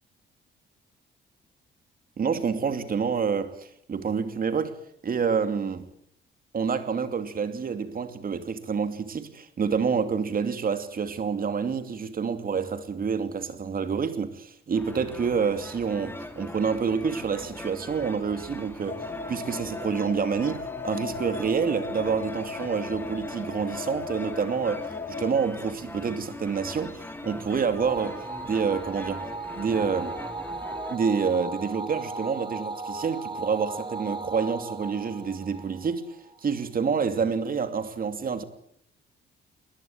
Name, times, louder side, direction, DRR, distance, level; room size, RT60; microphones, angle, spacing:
voice 1, 2.2-4.7 5.0-5.9 6.5-29.3 29.6-30.2 30.9-36.1 36.4-38.4, right 6 dB, 45° right, 2.7 m, -28 dB
sound 1, 14.7-31.0, left 1 dB, 10° left, 3.1 m, -41 dB
sound 2, 18.9-25.4, left 4 dB, 40° left, 4.1 m, -37 dB
sound 3, 27.8-36.4, right 3 dB, 25° right, 3.0 m, -36 dB
21.0 x 20.0 x 8.9 m
cardioid pair, 90°, 20 cm